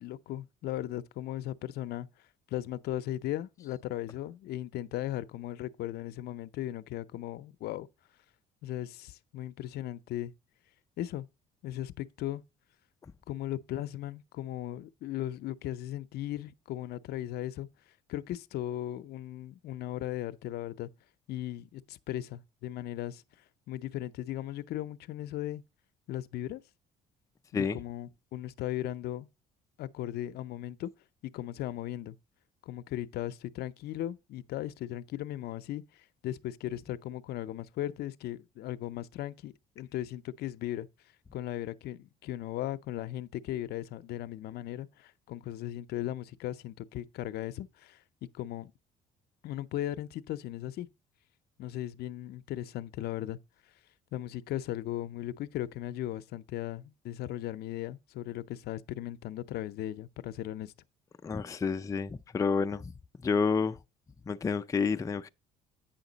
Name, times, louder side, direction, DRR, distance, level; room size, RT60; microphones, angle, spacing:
voice 1, 0.0-2.1 2.5-7.9 8.6-10.3 11.0-11.3 11.6-12.4 13.3-17.7 18.1-20.9 21.3-23.2 23.7-25.6 26.1-26.6 27.5-29.3 29.8-30.9 31.2-32.2 32.7-35.8 36.2-40.9 41.3-48.7 49.4-50.9 51.6-53.4 54.1-60.7, left 13 dB, 70° left, 0.5 m, -37 dB
voice 2, 61.2-62.9 63.2-63.8 64.3-65.3, left 5 dB, 20° left, 0.4 m, -29 dB
8.9 x 5.8 x 3.9 m
cardioid pair, 110°, 17 cm